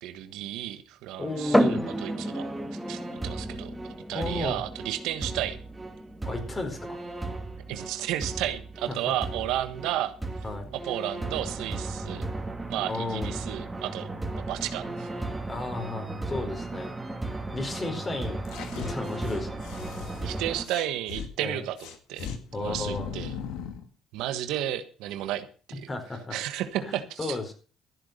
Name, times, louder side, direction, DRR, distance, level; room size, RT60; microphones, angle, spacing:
voice 1, 0.0-2.5 2.9-3.7 4.1-5.6 7.7-10.4 10.7-12.3 12.7-14.1 14.4-15.1 20.2-22.3 22.6-23.3 24.1-25.9 26.3-27.4, right 12 dB, 85° right, 10 dB, 1.3 m, -33 dB
voice 2, 1.2-1.8 4.1-4.6 6.2-7.0 8.9-9.0 10.4-10.7 12.9-13.3 15.5-16.9 17.5-18.4 18.8-19.5 21.4-21.6 22.5-23.1 25.9-26.4 26.8-27.5, left 2 dB, 30° left, 5 dB, 4.6 m, -33 dB
sound 1, 1.3-20.6, right 2 dB, 15° right, 3.0 m, -36 dB
sound 2, 1.5-15.0, equal, 5° left, 1.4 m, -34 dB
sound 3, 18.4-21.3 21.8-23.8, left 7 dB, 85° left, 1.9 m, -38 dB
14.0 x 8.1 x 6.7 m, 0.39 s
supercardioid pair, 80°, 0 cm